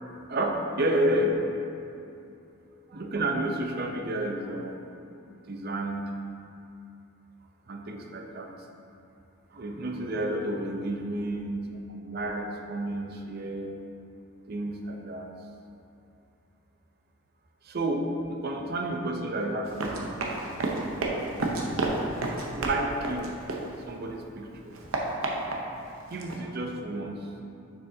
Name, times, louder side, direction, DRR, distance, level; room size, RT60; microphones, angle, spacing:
voice 1, 0.3-1.4 2.9-4.9 5.5-6.2 7.7-8.5 9.5-13.8 14.5-15.3 17.6-20.2 22.5-23.4 23.9-24.8 26.1-27.3, right 1 dB, 50° right, 2 dB, 0.6 m, -31 dB
Run, 19.6-24.1 24.5-26.4, right 2 dB, 85° right, 0.8 m, -31 dB
6.7 x 6.3 x 2.7 m, 2.6 s
head